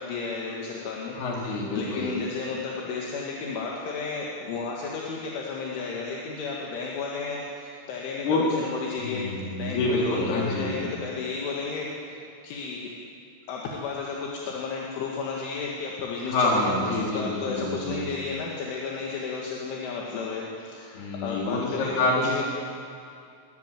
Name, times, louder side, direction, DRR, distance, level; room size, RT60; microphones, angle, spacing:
voice 1, 0.0-9.3 9.6-12.2 12.4-12.9 13.5-22.4, left 4 dB, 75° left, -3 dB, 4.3 m, -33 dB
voice 2, 1.1-2.1 8.2-8.4 9.0-10.8 16.3-18.1 20.9-22.4, left 2 dB, 55° left, -2 dB, 5.5 m, -27 dB
22.5 x 16.0 x 9.1 m, 2.4 s
omnidirectional pair, 5.8 m